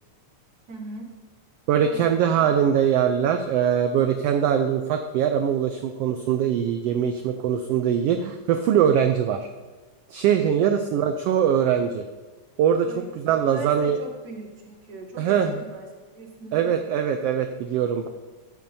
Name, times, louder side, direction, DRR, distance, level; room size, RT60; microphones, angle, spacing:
voice 1, 0.7-1.1 1.8-2.8 10.6-10.8 12.8-16.8, right 2 dB, 35° right, -4 dB, 2.2 m, -40 dB
voice 2, 1.7-9.5 10.1-12.0 12.6-12.9 13.2-14.0 15.2-15.6 16.5-18.1, right 8 dB, 90° right, 6 dB, 1.3 m, -22 dB
13.0 x 9.1 x 2.7 m, 1.3 s
omnidirectional pair, 3.4 m